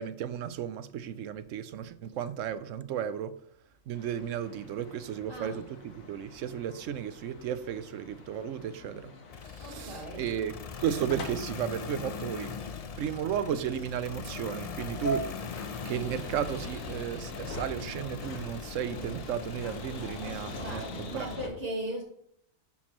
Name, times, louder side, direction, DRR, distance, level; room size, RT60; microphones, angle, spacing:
voice 1, 0.0-3.3 3.9-9.1 9.5-10.5 10.8-12.6 13.0-15.4 15.8-21.3, right 9 dB, 75° right, 1.0 m, -34 dB
sound 1, 3.9-21.5, left 1 dB, 85° left, 1.7 m, -43 dB
voice 2, 5.3-5.6 9.6-10.3 20.2-22.0, right 1 dB, 45° right, 1.8 m, -38 dB
sound 2, 9.3-21.4, left 6 dB, 65° left, 0.3 m, -41 dB
9.9 x 7.4 x 3.0 m
omnidirectional pair, 1.4 m